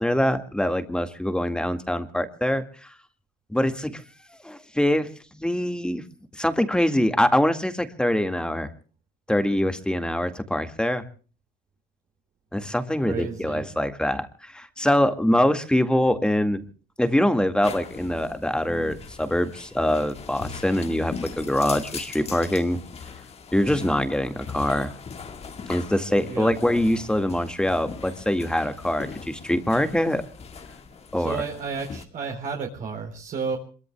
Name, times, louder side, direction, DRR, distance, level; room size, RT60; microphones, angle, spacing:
voice 1, 0.0-2.9 3.5-4.0 4.4-6.0 6.3-8.7 9.3-11.0 12.5-16.6 17.0-22.8 23.5-24.9 25.7-30.2 31.1-31.4, left 1 dB, 5° left, 8 dB, 2.0 m, -24 dB
voice 2, 13.1-13.6 26.3-26.5 31.2-33.6, right 5 dB, 55° right, 0 dB, 4.2 m, -31 dB
sound 1, 17.6-32.0, left 6 dB, 40° left, 1.8 m, -40 dB
27.5 x 23.0 x 2.3 m, 0.39 s
cardioid pair, 110°, 17 cm